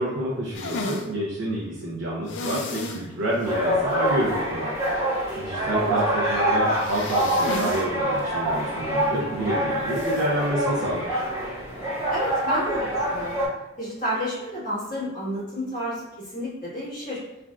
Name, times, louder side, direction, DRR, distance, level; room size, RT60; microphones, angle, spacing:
voice 1, 0.0-11.2, right 1 dB, 65° right, -5 dB, 0.5 m, -28 dB
sound 1, 0.5-1.1 2.3-3.0 3.4-3.5 3.9-4.0 6.7-7.9 8.2-8.3 9.9-10.3, left 3 dB, 70° left, 0.4 m, -33 dB
sound 2, 3.4-13.5, right 1 dB, 15° right, 1.0 m, -26 dB
voice 2, 12.1-13.4 13.8-17.2, equal, 45° left, -9 dB, 1.5 m, -30 dB
3.2 x 2.4 x 2.3 m, 0.96 s
head